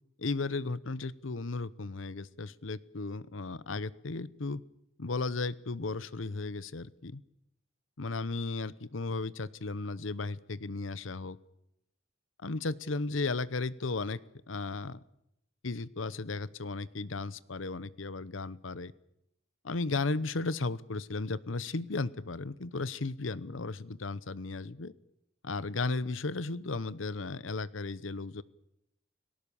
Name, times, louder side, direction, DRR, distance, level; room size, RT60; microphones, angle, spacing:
voice 1, 0.2-4.6 5.0-7.2 8.0-11.4 12.4-14.2 14.5-15.0 15.6-18.9 19.6-24.9 25.4-28.4, left 3 dB, 90° left, 18 dB, 0.9 m, -35 dB
29.5 x 18.5 x 7.2 m, 0.81 s
head